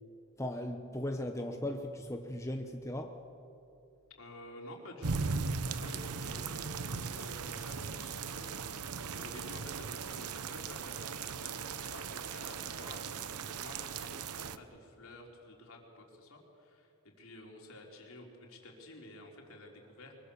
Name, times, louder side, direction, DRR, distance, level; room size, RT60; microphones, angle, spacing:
voice 1, 0.4-3.2, left 1 dB, 15° left, 4 dB, 1.0 m, -37 dB
voice 2, 4.1-5.3 5.7-8.6 9.1-20.1, left 1 dB, 70° left, 0 dB, 3.9 m, -51 dB
sound 1, 5.0-14.6, right 5 dB, 90° right, 0.9 m, -38 dB
23.5 x 22.5 x 7.0 m, 2.6 s
head